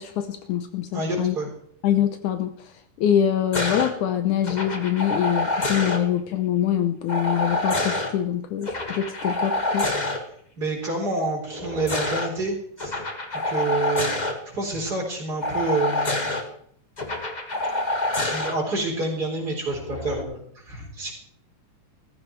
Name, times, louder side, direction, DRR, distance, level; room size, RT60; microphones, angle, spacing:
voice 1, 0.0-1.4 1.8-2.7 3.0-9.9, left 10 dB, 75° left, 10 dB, 2.2 m, -24 dB
voice 2, 0.9-1.5 10.6-13.0 13.4-16.3 18.1-21.1, right 2 dB, 30° right, 0 dB, 4.2 m, -28 dB
sound 1, 3.5-3.9 4.4-6.0 7.1-8.1 8.6-10.2 11.5-12.3 12.8-14.3 15.4-16.4 17.0-18.5 19.8-20.2, left 2 dB, 50° left, 0.5 m, -27 dB
15.0 x 14.5 x 4.6 m, 0.64 s
omnidirectional pair, 3.8 m